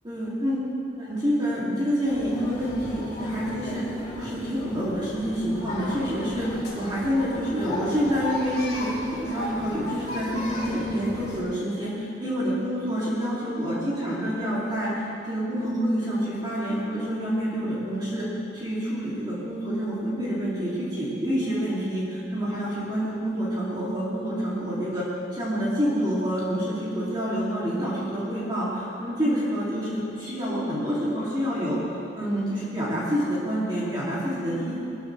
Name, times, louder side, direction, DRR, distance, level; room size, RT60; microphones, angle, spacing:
voice 1, 0.0-0.6 1.0-3.8 4.1-18.3 18.5-25.1 25.3-34.7, equal, 25° right, -9 dB, 2.7 m, -27 dB
sound 1, 2.1-11.4, left 1 dB, 35° left, 3.4 m, -36 dB
21.0 x 13.5 x 3.3 m, 2.9 s
head